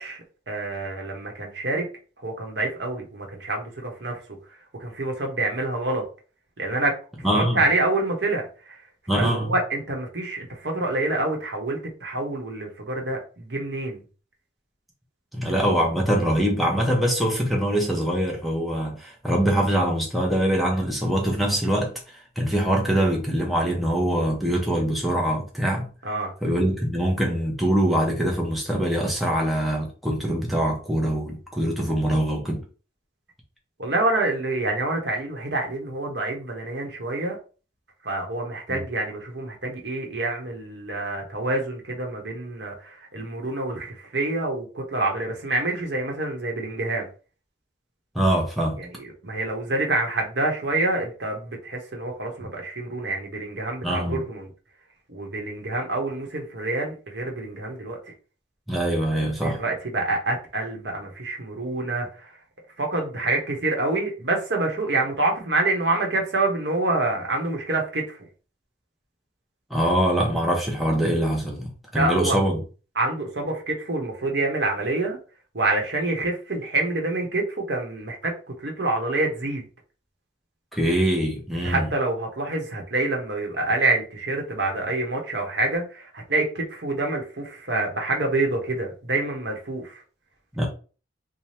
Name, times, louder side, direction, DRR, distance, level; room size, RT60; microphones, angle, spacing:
voice 1, 0.0-1.8 2.2-4.2 4.8-6.0 6.6-8.8 9.2-14.0 26.0-26.3 33.8-37.4 38.0-47.1 48.8-54.5 55.1-58.1 59.4-62.4 62.8-68.2 71.9-72.4 73.0-75.2 75.5-78.3 78.6-79.6 81.6-90.0, right 2 dB, 65° right, 1.0 m, -27 dB
voice 2, 7.2-7.6 9.1-9.5 15.3-25.9 26.4-32.6 38.7-38.8 48.1-48.8 53.8-54.2 58.7-59.6 69.7-72.6 80.7-81.9 90.5-90.7, right 1 dB, ahead, 0.7 m, -23 dB
3.2 x 2.2 x 4.2 m
head